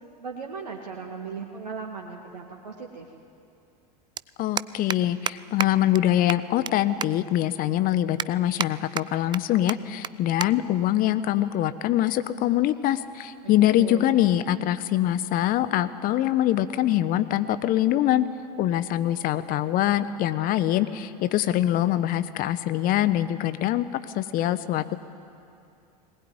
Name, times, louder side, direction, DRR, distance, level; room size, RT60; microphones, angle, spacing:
voice 1, 0.2-3.1 13.4-14.2, right 5 dB, 80° right, 0 dB, 2.2 m, -37 dB
sound 1, 1.9-2.0 3.4-3.5 3.7-3.9 4.2-4.3 4.6-5.0 5.3-5.4 5.6-5.7 5.9-6.0 6.3-6.7 7.0-7.1 7.6-7.7 8.2-8.7 9.0-9.4 9.7-9.8 10.0-10.1 10.4-10.5 10.8-11.0 11.8-12.1, right 9 dB, 20° right, 0.5 m, -29 dB
voice 2, 4.4-18.2 18.6-23.9 24.1-25.0, left 13 dB, 45° left, 13 dB, 1.1 m, -24 dB
20.5 x 20.0 x 9.6 m, 2.6 s
figure-of-eight pair, 80°, 21 cm